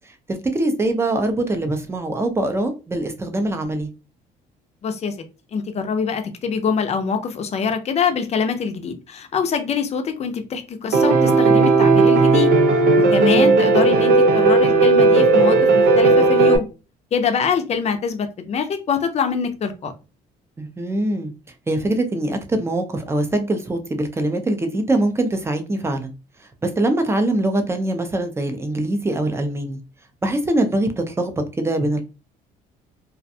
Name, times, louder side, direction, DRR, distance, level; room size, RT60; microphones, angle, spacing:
voice 1, 0.3-3.9 13.2-13.6 20.6-21.3 21.7-26.1 26.6-29.8 30.2-32.0, right 1 dB, 15° right, 0.5 m, -23 dB
voice 2, 4.8-5.1 5.5-12.5 12.9-16.6 17.1-19.9, left 6 dB, 40° left, 0.5 m, -24 dB
Piano, 10.9-16.6, right 3 dB, 65° right, 0.6 m, -15 dB
2.5 x 2.2 x 2.6 m
cardioid pair, 110°, 17 cm